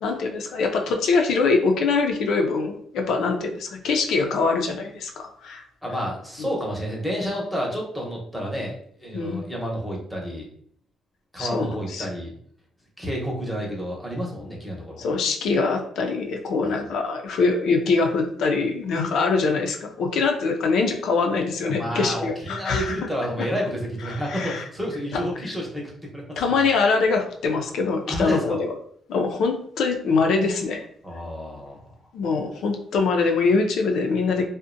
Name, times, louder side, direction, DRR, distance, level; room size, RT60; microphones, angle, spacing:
voice 1, 0.0-5.6 6.4-6.5 9.1-9.4 11.4-12.1 15.0-23.0 24.0-24.6 26.4-28.7 29.1-30.9 32.1-34.4, left 4 dB, 75° left, 3 dB, 0.4 m, -23 dB
voice 2, 5.8-10.5 11.3-12.3 13.0-15.1 21.6-26.5 28.1-28.6 31.0-31.9, equal, ahead, -3 dB, 0.8 m, -30 dB
2.5 x 2.0 x 2.5 m, 0.62 s
cardioid pair, 90°, 0 cm